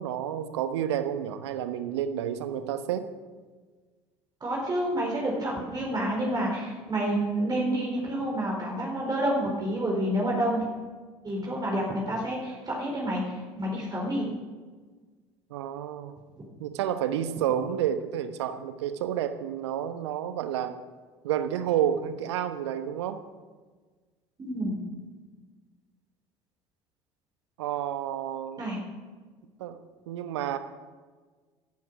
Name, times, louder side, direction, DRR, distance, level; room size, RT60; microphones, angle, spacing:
voice 1, 0.0-3.1 15.5-16.1 16.6-20.8 21.2-23.2 27.6-28.6 29.6-29.8 30.1-30.6, right 10 dB, 75° right, 10 dB, 1.1 m, -30 dB
voice 2, 4.4-10.6 11.2-14.3 24.4-24.8 28.6-28.8, right 1 dB, 30° right, -2 dB, 4.5 m, -29 dB
16.0 x 12.5 x 4.8 m, 1.4 s
figure-of-eight pair, 65°, 14 cm